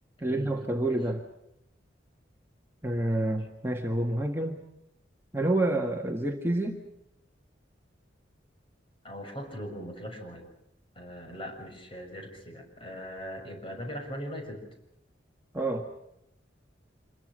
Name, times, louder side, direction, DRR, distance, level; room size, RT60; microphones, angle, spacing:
voice 1, 0.2-1.2 2.8-4.6 5.3-6.8 15.5-15.9, right 1 dB, 15° right, 2 dB, 1.7 m, -28 dB
voice 2, 9.0-10.4 10.9-14.7, equal, 30° left, 3 dB, 6.5 m, -40 dB
26.5 x 22.0 x 6.4 m, 0.81 s
head